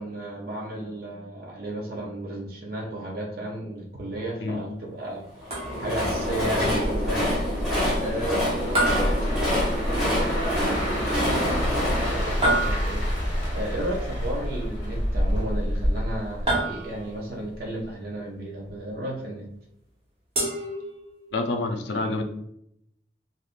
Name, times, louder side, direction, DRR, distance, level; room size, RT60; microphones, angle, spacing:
voice 1, 0.0-5.2 5.8-7.3 8.0-19.5, right 1 dB, 50° right, -2 dB, 0.5 m, -33 dB
Train, 5.4-13.5, left 1 dB, 5° right, 1.1 m, -28 dB
sound 1, 5.5-6.1 8.8-10.0 12.4-13.3 16.5-17.3 20.4-21.4, right 1 dB, 35° right, 0.9 m, -28 dB
sound 2, 6.2-17.2 17.5-17.8, equal, 40° left, 1.3 m, -28 dB
voice 2, 21.3-22.2, left 2 dB, 75° left, 4 dB, 0.5 m, -27 dB
3.5 x 2.5 x 2.4 m, 0.75 s
head